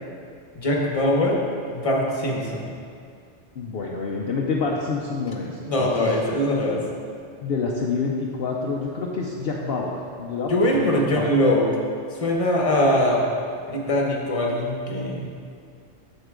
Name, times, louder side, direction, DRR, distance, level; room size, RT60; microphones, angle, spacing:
voice 1, 0.5-1.4 1.7-2.7 5.6-6.8 10.5-11.7 12.2-13.2 13.7-15.3, left 1 dB, 30° left, -1 dB, 1.1 m, -22 dB
voice 2, 3.6-6.1 7.4-11.4, left 4 dB, 60° left, -2 dB, 0.8 m, -28 dB
7.9 x 7.3 x 3.7 m, 2.3 s
omnidirectional pair, 1.2 m